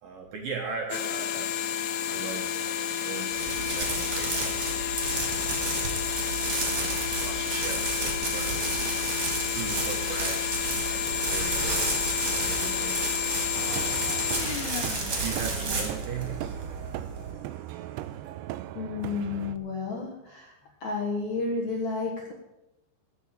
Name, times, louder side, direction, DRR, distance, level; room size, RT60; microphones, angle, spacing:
voice 1, 0.0-1.7 2.1-5.1 5.7-6.2 7.2-10.7 11.1-11.9 12.3-13.1 13.7-14.3 15.2-16.5, right 5 dB, 65° right, 1 dB, 2.3 m, -39 dB
sound 1, 0.9-16.1, left 9 dB, 80° left, 3.4 m, -31 dB
sound 2, 3.3-17.3, right 3 dB, 35° right, 2.6 m, -32 dB
sound 3, 13.5-19.6, right 13 dB, 85° right, 2.4 m, -38 dB
voice 2, 18.7-20.5 20.8-22.3, left 4 dB, 60° left, -1 dB, 2.0 m, -31 dB
14.5 x 5.9 x 9.1 m, 0.93 s
omnidirectional pair, 5.3 m